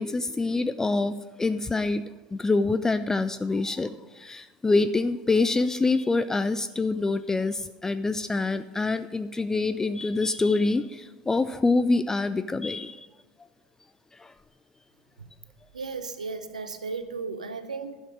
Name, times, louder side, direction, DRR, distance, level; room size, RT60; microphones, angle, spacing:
voice 1, 0.0-2.0 2.3-13.1 14.1-14.3, left 3 dB, 15° left, 12 dB, 0.4 m, -26 dB
voice 2, 15.7-18.0, right 4 dB, 80° right, 11 dB, 0.7 m, -35 dB
11.5 x 7.1 x 6.1 m, 1.2 s
figure-of-eight pair, 70°, 4 cm